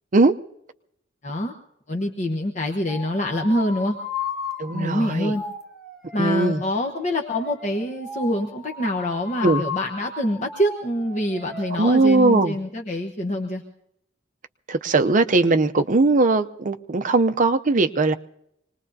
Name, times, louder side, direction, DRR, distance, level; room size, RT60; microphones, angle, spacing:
voice 1, 1.2-1.5 1.9-4.0 4.7-5.4 6.1-13.6, left 1 dB, 35° left, 2 dB, 1.0 m, -25 dB
sound 1, 2.9-11.8, left 4 dB, ahead, 1.6 m, -35 dB
voice 2, 4.6-5.3 6.2-6.6 9.4-9.6 11.8-12.5 14.7-18.1, right 3 dB, 40° right, 8 dB, 0.6 m, -19 dB
25.5 x 20.0 x 2.7 m, 0.79 s
head